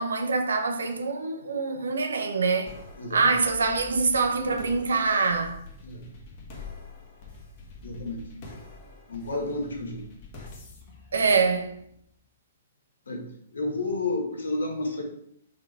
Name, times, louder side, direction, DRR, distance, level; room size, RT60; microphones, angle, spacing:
voice 1, 0.0-2.7 3.1-5.6 11.1-11.8, right 4 dB, 70° right, 0.9 m, -25 dB
sound 1, 2.7-12.1, left 3 dB, 40° left, 1.4 m, -45 dB
voice 2, 7.8-8.3 9.1-10.0 13.1-13.3 13.5-15.0, left 2 dB, 70° left, 1.5 m, -31 dB
4.9 x 4.1 x 4.8 m
figure-of-eight pair, 115°, 0 cm